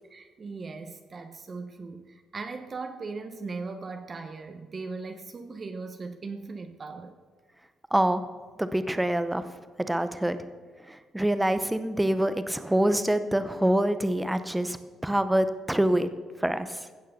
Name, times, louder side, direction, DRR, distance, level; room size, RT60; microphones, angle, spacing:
voice 1, 0.1-7.2, right 4 dB, 40° right, 7 dB, 1.0 m, -38 dB
voice 2, 7.9-8.2 8.6-9.4 9.9-10.4 10.9-14.8 15.0-16.1 16.4-16.9, right 1 dB, 10° right, 11 dB, 0.8 m, -25 dB
16.0 x 6.5 x 6.6 m, 1.4 s
cardioid pair, 90°, 0 cm